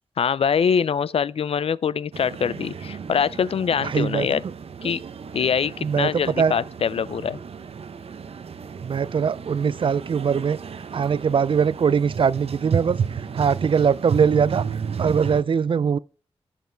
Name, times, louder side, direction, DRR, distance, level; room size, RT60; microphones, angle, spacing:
voice 1, 0.2-4.4 4.8-5.0 5.3-7.4, left 7 dB, 70° left, 0.4 m, -24 dB
sound 1, 2.1-15.4, right 6 dB, 75° right, 0.8 m, -33 dB
voice 2, 3.8-4.3 5.8-6.5 8.8-10.6 10.9-16.0, right 6 dB, 55° right, 0.4 m, -22 dB
11.0 x 6.9 x 4.5 m
wide cardioid pair, 125°, 10 cm